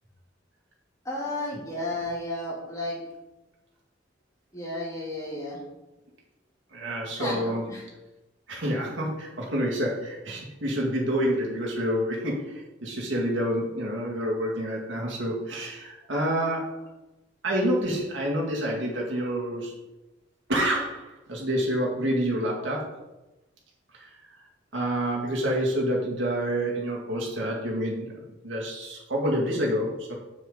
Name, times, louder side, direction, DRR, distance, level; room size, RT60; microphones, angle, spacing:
voice 1, 1.0-3.0 4.5-5.6 7.2-7.8, left 1 dB, 15° left, -6 dB, 2.8 m, -33 dB
voice 2, 6.7-7.6 8.5-16.8 17.4-19.7 20.5-22.9 24.0-24.1 24.7-30.1, equal, 80° right, -2 dB, 2.1 m, -28 dB
7.1 x 7.1 x 3.9 m, 1.0 s
head